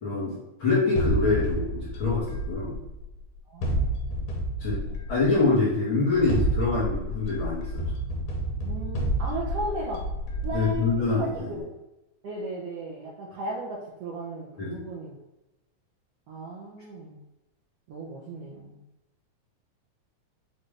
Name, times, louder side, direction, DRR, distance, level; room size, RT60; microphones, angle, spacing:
voice 1, 0.0-2.8 4.6-4.8 5.1-7.7 10.5-11.5 14.6-14.8, left 3 dB, 55° left, -8 dB, 1.5 m, -25 dB
sound 1, 1.0-3.1 3.6-5.4 6.1-11.2, right 1 dB, 80° left, 2.4 m, -29 dB
voice 2, 3.4-3.9 4.9-5.0 8.6-10.1 10.4-11.7 12.2-15.2 16.3-17.2 17.9-18.8, right 2 dB, 75° right, -4 dB, 1.4 m, -36 dB
6.4 x 2.5 x 3.3 m, 0.98 s
omnidirectional pair, 3.6 m